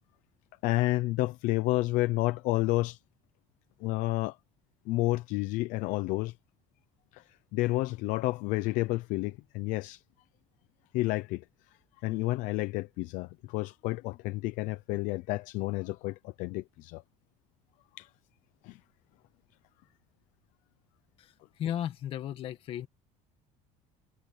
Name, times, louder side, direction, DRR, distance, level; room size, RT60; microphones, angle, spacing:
voice 1, 0.6-3.0 3.8-4.4 4.9-6.3 7.1-10.0 10.9-11.4 12.0-17.0 17.9-18.1 18.6-18.8, left 19 dB, 65° left, 0.7 m, -30 dB
voice 2, 21.2-22.9, left 10 dB, 40° left, 1.9 m, -35 dB
cardioid pair, 175°, 14 cm